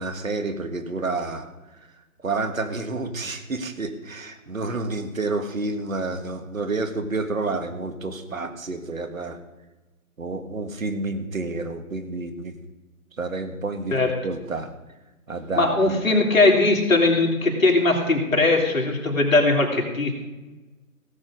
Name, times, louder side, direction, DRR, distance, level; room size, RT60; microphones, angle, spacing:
voice 1, 0.0-1.5 2.2-9.4 10.2-12.5 13.2-14.0 14.2-14.7 15.3-16.0, right 3 dB, 65° right, 7 dB, 1.8 m, -29 dB
voice 2, 15.6-20.2, left 2 dB, 65° left, 1 dB, 3.0 m, -20 dB
17.0 x 7.5 x 5.0 m, 1.1 s
figure-of-eight pair, 155°, 44 cm